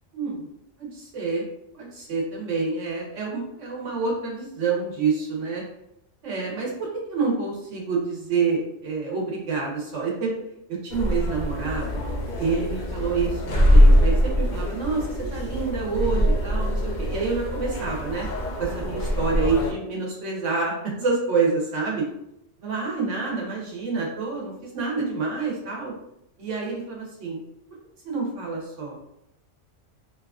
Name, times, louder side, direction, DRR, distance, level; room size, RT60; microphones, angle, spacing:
voice 1, 0.1-0.5 0.8-1.4 1.7-5.6 6.2-10.4 10.7-11.9 12.4-18.3 18.6-22.1 22.6-25.9 26.4-27.4 28.0-29.0, right 4 dB, 70° right, -2 dB, 1.2 m, -27 dB
sound 1, 10.9-19.7, equal, 60° left, 0.5 m, -22 dB
3.0 x 2.3 x 2.3 m, 0.81 s
omnidirectional pair, 1.3 m